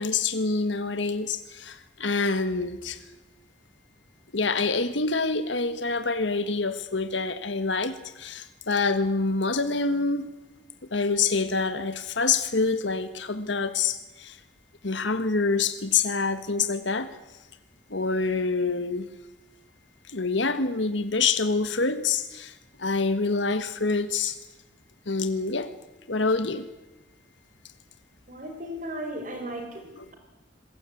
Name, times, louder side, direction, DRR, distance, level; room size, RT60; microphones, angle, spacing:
voice 1, 0.0-3.0 4.3-10.3 10.9-14.4 14.8-17.2 17.9-19.1 20.1-24.4 25.1-25.7 26.1-26.7, left 4 dB, 75° left, 10 dB, 1.6 m, -26 dB
voice 2, 28.3-30.2, right 1 dB, 45° right, 4 dB, 4.1 m, -36 dB
27.0 x 21.5 x 8.6 m, 1.1 s
head